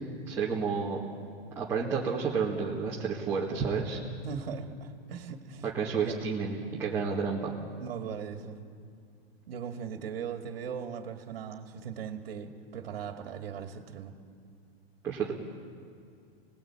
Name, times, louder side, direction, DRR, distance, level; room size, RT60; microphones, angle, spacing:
voice 1, 0.3-1.0 1.6-4.0 5.6-7.6 15.0-15.3, right 5 dB, 10° right, -6 dB, 2.0 m, -30 dB
voice 2, 4.2-5.7 6.0-6.2 7.8-8.6 9.5-14.1, right 7 dB, 60° right, 5 dB, 2.2 m, -39 dB
28.0 x 20.0 x 8.8 m, 2.3 s
supercardioid pair, 175°, 32 cm